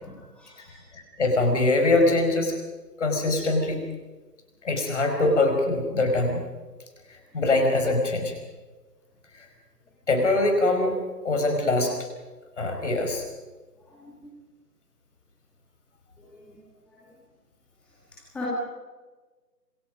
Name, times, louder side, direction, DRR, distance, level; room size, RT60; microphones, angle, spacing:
voice 1, 0.0-0.8 13.9-14.3 16.2-16.3 18.3-18.5, left 3 dB, ahead, -7 dB, 2.3 m, -40 dB
voice 2, 0.9-2.5 3.0-3.8 4.6-6.4 7.3-8.3 10.1-11.9 12.6-13.2, left 2 dB, 45° left, 4 dB, 5.1 m, -23 dB
27.0 x 21.5 x 5.3 m, 1.3 s
figure-of-eight pair, 155°, 49 cm